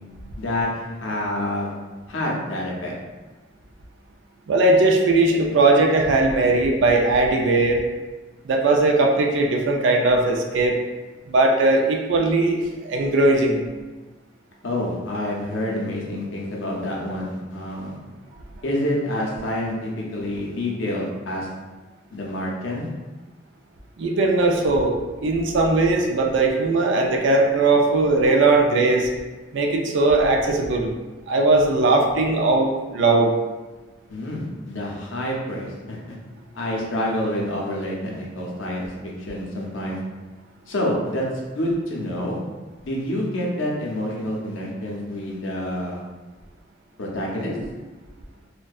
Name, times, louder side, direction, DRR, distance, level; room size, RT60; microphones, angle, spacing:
voice 1, 0.4-1.7 2.1-3.0 14.6-18.0 18.6-21.5 22.1-22.9 34.1-36.2 36.5-40.0 40.7-41.3 41.5-42.4 42.8-46.0 47.0-47.6, left 1 dB, 80° left, -2 dB, 0.6 m, -27 dB
voice 2, 4.5-7.8 8.4-10.8 11.3-13.6 24.0-29.1 29.5-30.9 31.3-33.3, right 2 dB, 70° right, 1 dB, 0.4 m, -19 dB
2.6 x 2.1 x 2.3 m, 1.2 s
head